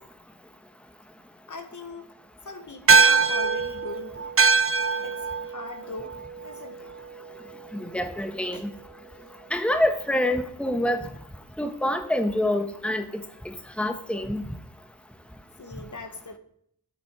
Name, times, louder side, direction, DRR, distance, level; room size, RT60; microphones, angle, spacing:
voice 1, 1.5-2.1 2.4-4.3 5.0-5.2 5.5-6.2 6.4-6.9 8.5-8.6 15.6-16.4, left 2 dB, 55° left, 7 dB, 1.2 m, -39 dB
sound 1, 2.9-7.6, right 4 dB, 40° right, 0.6 m, -23 dB
voice 2, 7.8-8.7 9.5-11.0 11.6-13.0 13.4-14.4, left 1 dB, 5° left, 7 dB, 1.2 m, -26 dB
10.5 x 8.4 x 4.8 m, 0.69 s
cardioid pair, 45°, 35 cm